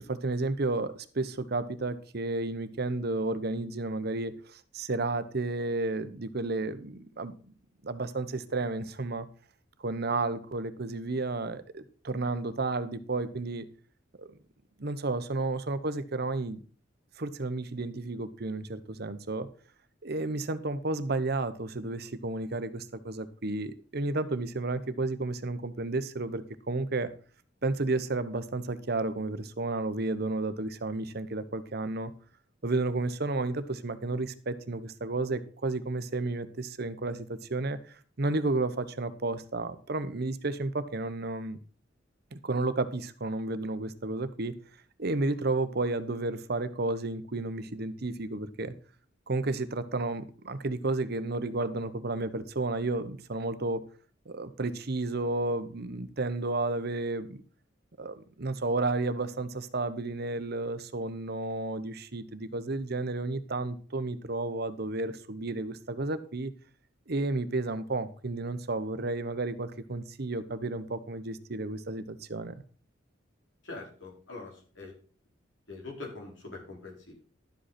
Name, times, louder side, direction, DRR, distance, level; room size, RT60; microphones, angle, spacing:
voice 1, 0.1-7.3 7.8-9.3 9.8-13.6 14.2-14.3 14.8-16.6 17.2-19.5 20.0-27.1 27.6-32.1 32.6-37.8 38.2-41.6 42.3-44.6 45.0-48.7 49.3-53.8 54.3-57.4 58.0-66.5 67.1-72.5, right 2 dB, 55° right, 12 dB, 0.9 m, -32 dB
voice 2, 73.6-74.9 75.7-77.1, left 3 dB, 75° left, -1 dB, 4.9 m, -43 dB
11.5 x 7.8 x 4.2 m, 0.41 s
head